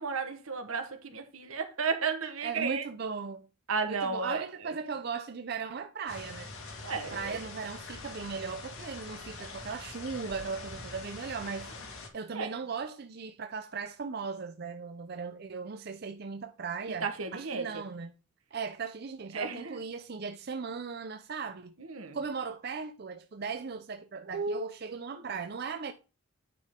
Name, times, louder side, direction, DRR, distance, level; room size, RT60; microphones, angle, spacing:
voice 1, 0.0-2.9 3.7-4.4 6.8-7.4 12.3-12.6 17.0-17.8 19.3-19.8 21.9-22.2 24.3-24.7, right 4 dB, 90° right, 1.3 m, -33 dB
voice 2, 2.4-3.5 3.9-6.5 7.1-11.7 12.1-18.1 18.5-21.7 22.1-25.9, right 5 dB, 50° right, 0.5 m, -38 dB
sound 1, 6.1-12.1, left 3 dB, 80° left, 1.9 m, -44 dB
9.2 x 5.4 x 3.6 m
head